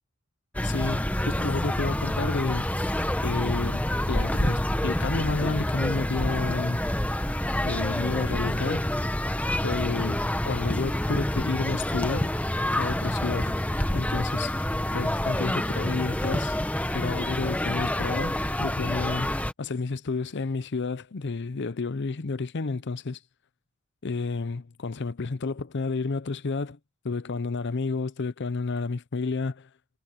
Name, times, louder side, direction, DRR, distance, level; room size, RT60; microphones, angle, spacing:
sound 1, 0.5-19.5, left 1 dB, 5° left, 1.0 m, -27 dB
voice 1, 0.6-2.7 3.2-6.8 7.6-8.9 9.6-12.3 12.8-13.6 13.9-14.6 14.9-16.6 16.9-19.3 19.6-23.2 24.0-26.8 27.0-29.7, left 4 dB, 55° left, 0.6 m, -31 dB
head